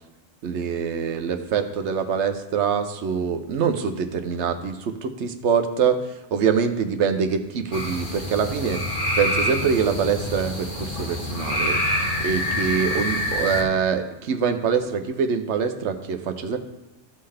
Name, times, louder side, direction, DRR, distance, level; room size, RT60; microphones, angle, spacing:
voice 1, 0.4-8.8 9.2-11.8 12.2-16.6, right 6 dB, 75° right, 8 dB, 1.0 m, -24 dB
sound 1, 7.7-13.6, left 1 dB, 45° left, 1.6 m, -26 dB
14.5 x 5.6 x 3.4 m, 0.99 s
omnidirectional pair, 1.2 m